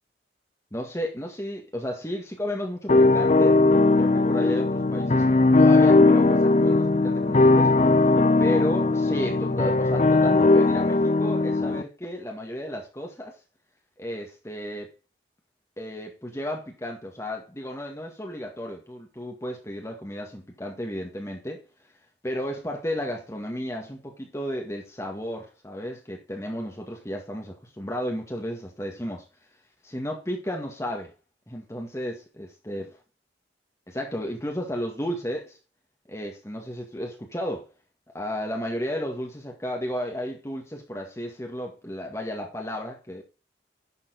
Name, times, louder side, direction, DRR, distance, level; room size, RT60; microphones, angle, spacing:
voice 1, 0.7-3.6 4.0-5.2 5.5-7.7 8.4-13.4 14.0-14.9 15.8-21.6 22.2-29.2 29.8-31.1 31.5-32.8 33.9-35.6 36.1-37.7 38.1-43.2, equal, 15° left, 1.8 m, -33 dB
sound 1, 2.9-11.8, left 3 dB, 35° left, 0.5 m, -19 dB
11.5 x 7.2 x 4.0 m
head